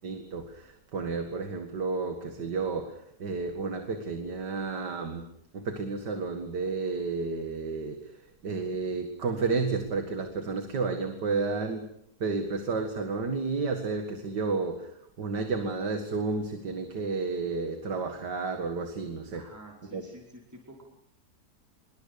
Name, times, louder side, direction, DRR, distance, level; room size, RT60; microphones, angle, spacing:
voice 1, 0.0-5.3 5.5-11.9 12.2-19.4 19.8-20.0, right 4 dB, 85° right, 6 dB, 2.5 m, -31 dB
voice 2, 19.3-20.8, right 1 dB, 10° right, -2 dB, 5.0 m, -49 dB
25.5 x 23.0 x 6.8 m, 0.71 s
omnidirectional pair, 1.8 m